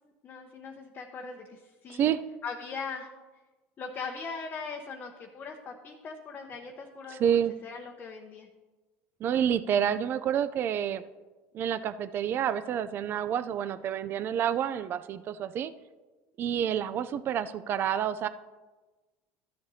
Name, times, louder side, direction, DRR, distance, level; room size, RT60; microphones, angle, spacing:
voice 1, 0.2-2.1 2.4-3.1 3.8-8.5, left 4 dB, 35° left, 1 dB, 0.8 m, -40 dB
voice 2, 1.9-2.2 7.1-7.5 9.2-11.0 11.5-15.7 16.4-18.3, right 9 dB, 40° right, 13 dB, 0.4 m, -28 dB
13.5 x 7.7 x 2.7 m, 1.2 s
supercardioid pair, 125°, 6 cm